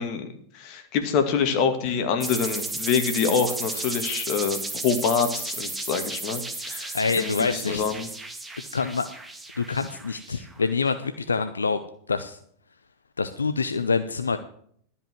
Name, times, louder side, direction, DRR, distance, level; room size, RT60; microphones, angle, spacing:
voice 1, 0.0-4.6 4.8-8.1, left 6 dB, 50° left, 7 dB, 2.1 m, -26 dB
sound 1, 2.2-10.7, right 2 dB, 10° right, 1.6 m, -34 dB
voice 2, 6.9-7.8 8.7-9.1 9.6-11.8 12.1-12.4 13.2-14.4, left 4 dB, 90° left, 10 dB, 0.6 m, -26 dB
12.5 x 5.6 x 9.2 m, 0.62 s
hypercardioid pair, 95°, 0 cm